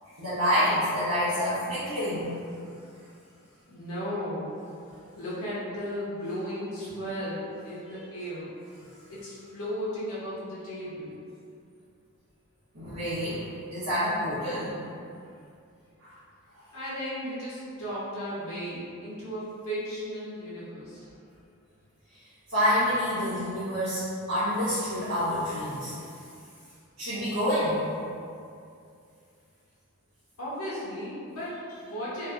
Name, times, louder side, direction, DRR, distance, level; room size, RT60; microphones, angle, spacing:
voice 1, 0.2-2.3 8.8-9.0 12.7-13.4 13.7-14.8 16.0-16.1 22.1-22.2 22.5-25.9 27.0-27.9, equal, 70° right, -16 dB, 0.9 m, -27 dB
voice 2, 3.7-4.5 5.2-8.5 9.1-11.2 16.7-21.1 30.4-32.3, equal, 75° left, -9 dB, 0.8 m, -35 dB
2.7 x 2.6 x 2.4 m, 2.5 s
head